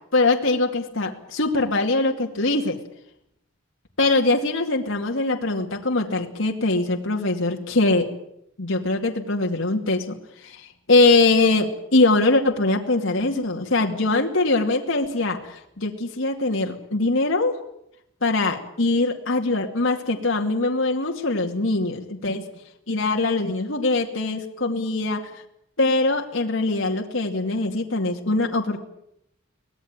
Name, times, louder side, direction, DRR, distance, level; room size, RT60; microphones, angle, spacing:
voice 1, 0.1-2.8 4.0-8.1 8.6-17.6 18.2-22.4 22.9-25.2 25.8-28.8, left 2 dB, 70° left, 2 dB, 2.4 m, -22 dB
24.0 x 18.5 x 8.9 m, 0.77 s
head